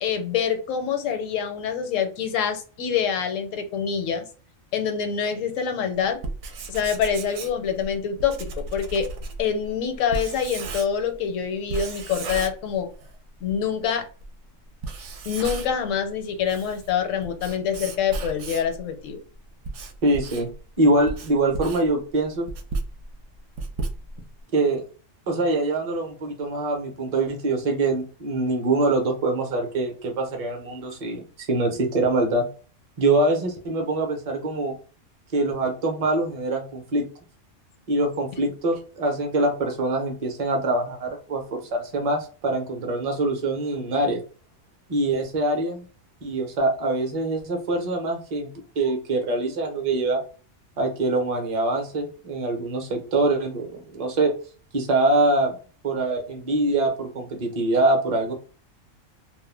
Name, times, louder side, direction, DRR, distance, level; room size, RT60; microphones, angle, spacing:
voice 1, 0.0-4.2 4.7-6.2 6.7-9.1 9.4-12.9 13.4-14.1 15.3-19.2, left 7 dB, 80° left, 6 dB, 1.0 m, -26 dB
Writing, 6.2-11.2 11.7-13.2 13.5-13.6 14.2-14.3 14.7-15.9 16.3-18.8 19.4-24.4, right 3 dB, 70° right, 0.9 m, -34 dB
voice 2, 20.0-20.5 20.8-22.5 24.5-24.8 25.3-32.4 33.0-34.7 35.3-37.1 37.9-44.2 44.9-45.9 46.2-48.5 48.8-50.2 50.8-54.3 54.7-55.5 55.8-58.3, right 2 dB, 35° right, 3 dB, 0.6 m, -24 dB
2.4 x 2.1 x 3.2 m, 0.37 s
omnidirectional pair, 1.3 m